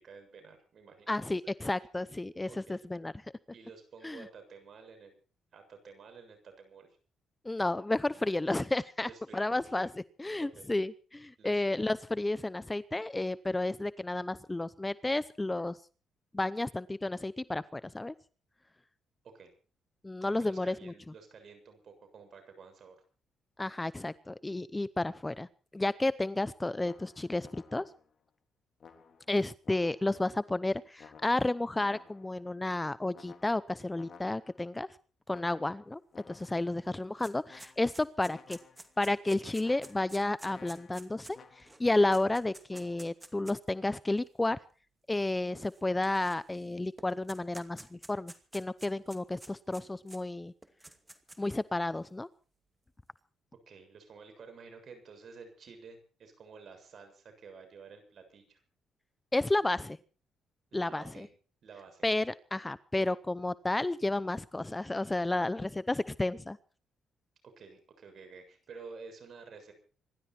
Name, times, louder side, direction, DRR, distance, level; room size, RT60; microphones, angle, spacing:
voice 1, 0.0-1.3 2.4-2.7 3.5-5.1 5.5-7.0 9.0-9.8 10.4-10.7 11.4-11.8 19.2-19.5 20.2-23.0 53.7-58.6 60.7-61.3 61.6-62.1 63.0-63.1 67.6-69.7, right 5 dB, 55° right, 6 dB, 7.3 m, -51 dB
voice 2, 1.1-3.1 4.0-4.2 7.4-9.9 10.2-15.8 16.3-18.1 20.0-20.9 23.6-25.5 25.7-27.8 29.3-34.9 35.3-38.6 39.0-44.6 45.1-50.5 51.4-52.3 59.3-60.0 60.7-61.3 62.0-66.6, left 2 dB, 15° left, 17 dB, 0.7 m, -32 dB
sound 1, 26.8-28.1 28.8-30.3 31.0-32.5 33.1-34.7 35.3-36.7 37.5-38.1 38.3-39.0 39.6-41.9 42.7-43.0, left 6 dB, 50° left, 3.7 m, -56 dB
sound 2, 36.4-36.5 36.7-43.7 44.5-44.6 45.6-46.7 47.0-50.2 50.6-51.6, right 2 dB, 15° right, 2.4 m, -51 dB
26.0 x 12.0 x 4.4 m, 0.38 s
cardioid pair, 90°, 0 cm